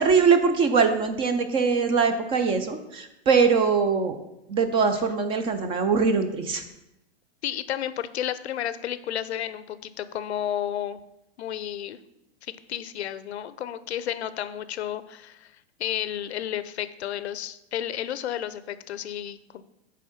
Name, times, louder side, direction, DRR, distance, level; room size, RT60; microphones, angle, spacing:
voice 1, 0.0-4.2 4.5-6.6, right 5 dB, 15° right, 8 dB, 0.4 m, -22 dB
voice 2, 7.4-11.0 11.4-12.0 12.4-15.5 15.8-19.6, left 11 dB, 85° left, 14 dB, 0.6 m, -32 dB
8.4 x 3.6 x 5.8 m, 0.88 s
hypercardioid pair, 130°, 32 cm